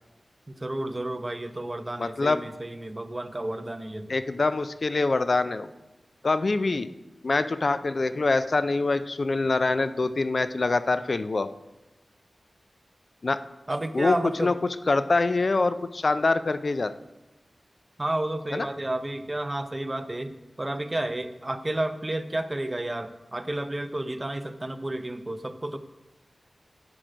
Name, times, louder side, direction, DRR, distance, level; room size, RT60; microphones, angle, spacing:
voice 1, 0.6-4.1 13.7-14.5 18.0-20.3 20.6-25.8, right 1 dB, 25° right, 10 dB, 0.7 m, -31 dB
voice 2, 2.0-2.4 4.1-5.7 6.2-6.9 7.2-11.5 13.2-13.4 13.9-14.5 14.9-16.9 18.5-18.7, left 3 dB, 50° left, 12 dB, 0.4 m, -24 dB
10.5 x 7.8 x 5.0 m, 1.0 s
wide cardioid pair, 90°, 0 cm